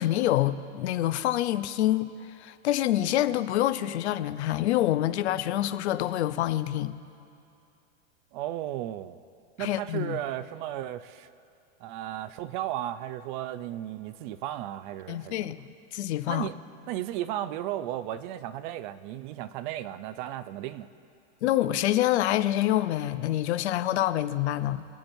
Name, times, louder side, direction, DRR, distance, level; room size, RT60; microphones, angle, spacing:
voice 1, 0.0-2.1 2.4-7.0 9.6-10.2 15.1-16.5 21.4-24.9, left 13 dB, 80° left, 0.7 m, -26 dB
voice 2, 8.3-9.2 9.6-11.3 11.8-15.5 16.3-16.5 16.9-20.9, right 13 dB, 45° right, 0.5 m, -35 dB
25.5 x 8.8 x 2.6 m
supercardioid pair, 140°, 33 cm